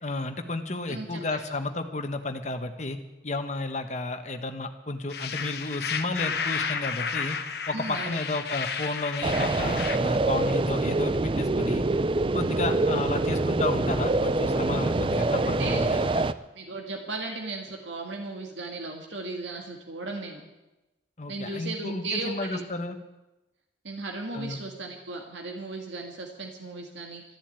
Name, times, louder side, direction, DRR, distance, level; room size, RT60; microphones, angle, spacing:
voice 1, 0.0-3.0 3.2-7.4 7.7-11.8 12.3-16.2 21.2-23.0 24.3-24.6, left 2 dB, 40° left, 6 dB, 1.3 m, -32 dB
voice 2, 0.9-1.2 7.7-8.2 15.4-15.9 16.6-20.4 21.3-22.6 23.8-27.2, right 2 dB, 80° right, 2 dB, 1.9 m, -36 dB
sound 1, 5.1-10.0, left 6 dB, 55° left, 1.2 m, -32 dB
sound 2, 9.2-16.3, right 2 dB, 30° right, 0.4 m, -25 dB
13.0 x 11.0 x 8.9 m, 1.0 s
head